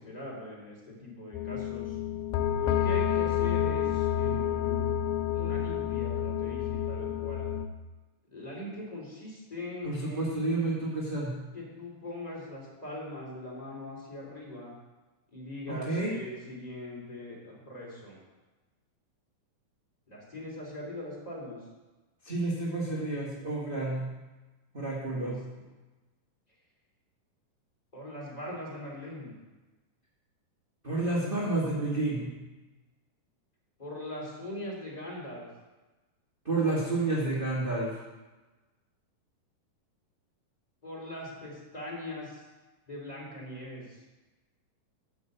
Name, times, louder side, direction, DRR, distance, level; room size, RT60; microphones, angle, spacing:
voice 1, 0.0-2.0 2.6-4.9 5.3-7.5 8.3-10.7 11.5-14.7 15.3-18.2 20.1-21.6 25.1-25.4 27.9-29.3 33.8-35.5 40.8-42.4 42.9-44.0, left 1 dB, 10° left, -3 dB, 2.7 m, -41 dB
sound 1, 1.3-7.7, left 9 dB, 80° left, 1.9 m, -29 dB
voice 2, 9.8-11.4 15.7-16.2 22.2-24.1 24.7-25.4 30.8-32.3 36.4-38.0, right 2 dB, 25° right, -6 dB, 1.2 m, -30 dB
10.5 x 5.7 x 7.9 m, 1.2 s
omnidirectional pair, 4.1 m